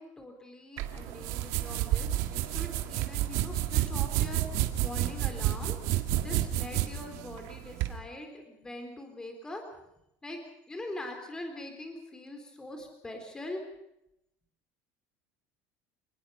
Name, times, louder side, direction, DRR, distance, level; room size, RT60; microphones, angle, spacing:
voice 1, 0.0-5.8 6.2-9.6 10.2-10.4 10.7-13.6, left 1 dB, 10° left, 4 dB, 4.0 m, -42 dB
sound 1, 0.8-7.9, right 13 dB, 70° right, 2.0 m, -30 dB
28.5 x 19.5 x 5.8 m, 0.82 s
cardioid pair, 150°, 6 cm